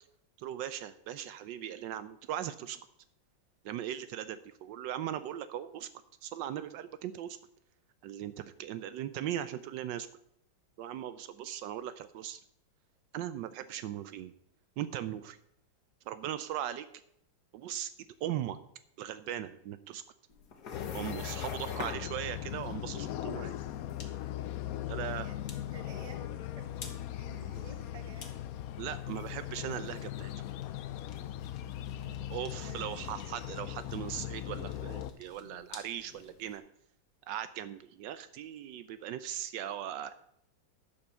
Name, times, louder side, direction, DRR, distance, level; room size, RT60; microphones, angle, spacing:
voice 1, 0.4-2.8 3.6-5.9 6.2-7.4 8.0-10.1 10.8-12.4 13.1-14.3 14.8-15.4 16.1-16.9 17.5-18.6 19.0-20.0 20.9-23.5 24.9-25.3 28.8-30.3 32.3-36.6 37.3-40.1, right 11 dB, 80° right, 13 dB, 1.2 m, -39 dB
sound 1, 20.3-36.6, left 5 dB, 60° left, 1.8 m, -49 dB
sound 2, 20.7-35.1, left 12 dB, 75° left, 0.8 m, -39 dB
voice 2, 24.9-28.4 31.8-33.1, right 4 dB, 25° right, 6 dB, 1.1 m, -53 dB
11.0 x 5.5 x 6.8 m, 0.74 s
omnidirectional pair, 2.0 m